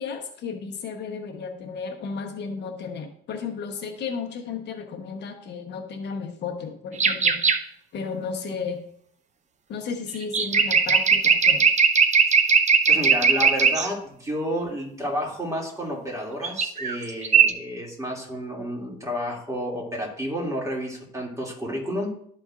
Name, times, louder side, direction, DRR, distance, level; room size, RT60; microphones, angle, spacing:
voice 1, 0.0-7.4 7.9-8.9 9.7-11.7, left 5 dB, 60° left, 3 dB, 1.1 m, -33 dB
sound 1, 7.0-7.6 10.2-13.9 16.4-17.0 17.2-17.5, right 6 dB, 35° right, 0.7 m, -19 dB
voice 2, 12.9-22.1, equal, 15° right, -2 dB, 2.5 m, -30 dB
12.5 x 4.4 x 2.5 m, 0.66 s
supercardioid pair, 90°, 20 cm